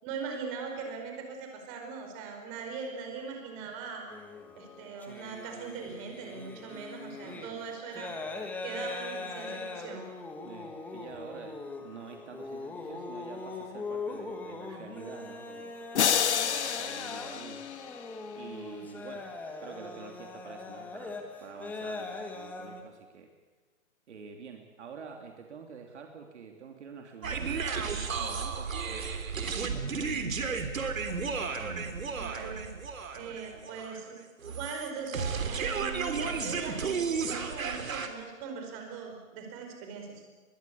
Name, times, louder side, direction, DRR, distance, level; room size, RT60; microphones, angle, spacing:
voice 1, 0.0-4.1 4.5-8.1 8.6-10.1 32.1-32.7 33.1-40.2, right 5 dB, 25° right, 3 dB, 4.8 m, -40 dB
sound 1, 4.1-22.8, left 3 dB, 5° left, 1.3 m, -41 dB
voice 2, 7.2-7.7 8.0-8.1 9.5-9.6 10.4-17.6 18.3-19.3 19.6-23.3 24.1-31.0 33.3-33.8, right 6 dB, 60° right, 3 dB, 3.2 m, -47 dB
sound 2, 16.0-18.3, left 8 dB, 55° left, 1.8 m, -29 dB
sound 3, 27.2-38.1, right 5 dB, 80° right, 3.5 m, -33 dB
22.0 x 21.5 x 8.7 m, 1.3 s
hypercardioid pair, 160°, 40 cm